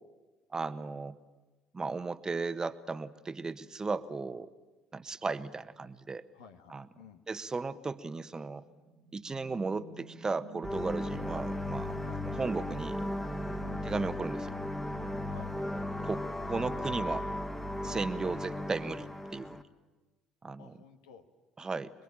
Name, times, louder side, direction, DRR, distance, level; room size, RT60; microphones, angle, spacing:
voice 1, 0.5-1.2 1.7-4.5 4.9-6.2 6.7-6.9 7.3-8.6 9.1-11.9 12.2-13.0 13.8-14.5 16.0-17.3 17.8-19.6 20.4-20.8 21.6-21.9, right 4 dB, 25° right, 13 dB, 1.3 m, -35 dB
voice 2, 6.3-7.2 12.0-12.2 13.6-13.9 15.3-15.5 17.8-18.0 20.6-21.2, left 7 dB, 80° left, 7 dB, 1.7 m, -52 dB
sound 1, 8.6-14.9, right 5 dB, 50° right, 1.9 m, -52 dB
sound 2, 10.6-19.6, left 1 dB, 10° left, 1.8 m, -36 dB
27.0 x 21.5 x 8.9 m, 1.2 s
hypercardioid pair, 55°, 3 cm